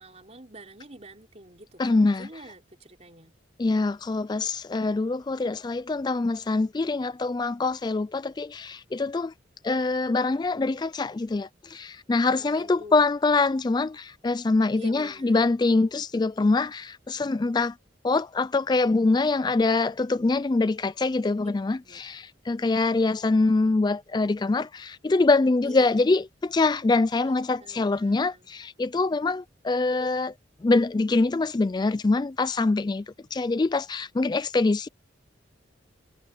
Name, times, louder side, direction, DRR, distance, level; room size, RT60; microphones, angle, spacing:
voice 1, 0.0-3.3 12.4-13.0 14.7-15.4 21.8-22.1 25.6-26.0 27.2-28.5, right 1 dB, 35° right, 5.1 m, -47 dB
voice 2, 1.8-2.3 3.6-9.3 9.6-17.7 18.0-30.3 30.6-33.0 33.3-34.9, left 3 dB, 20° left, 0.3 m, -24 dB
head